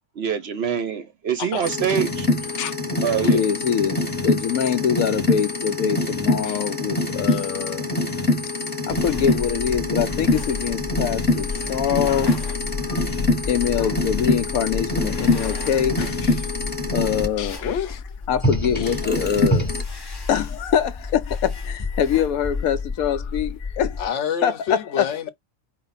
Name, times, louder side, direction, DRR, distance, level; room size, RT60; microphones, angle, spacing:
voice 1, 0.2-2.3 3.0-3.4, right 7 dB, 60° right, 0.7 m, -24 dB
sound 1, 1.6-17.3 18.4-19.8, left 2 dB, 10° left, 0.9 m, -24 dB
voice 2, 3.2-7.9 8.9-12.3 12.8-16.5 16.9-17.7 18.3-19.7 20.3-24.0 24.4-25.1, left 8 dB, 90° left, 1.1 m, -24 dB
sound 2, 8.9-24.1, left 4 dB, 35° left, 0.4 m, -32 dB
voice 3, 17.6-18.0 24.0-25.3, left 8 dB, 60° left, 1.0 m, -27 dB
4.8 x 2.5 x 4.0 m
omnidirectional pair, 1.5 m